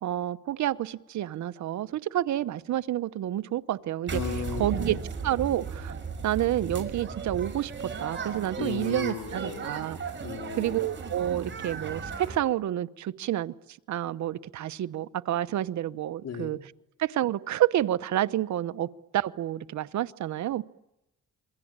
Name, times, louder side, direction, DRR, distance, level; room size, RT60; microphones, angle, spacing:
voice 1, 0.0-4.2 4.6-5.0 5.2-5.9 6.2-7.7 8.0-10.0 10.6-13.5 13.9-16.6 17.0-18.9 19.1-20.6, right 12 dB, 70° right, 1.1 m, -29 dB
voice 2, 4.1-5.0 8.6-9.7 10.2-10.9 16.2-16.6, left 7 dB, 55° left, 3.6 m, -36 dB
sound 1, 4.1-12.4, right 5 dB, 40° right, 5.9 m, -36 dB
28.0 x 23.0 x 8.9 m
cardioid pair, 90°, 30 cm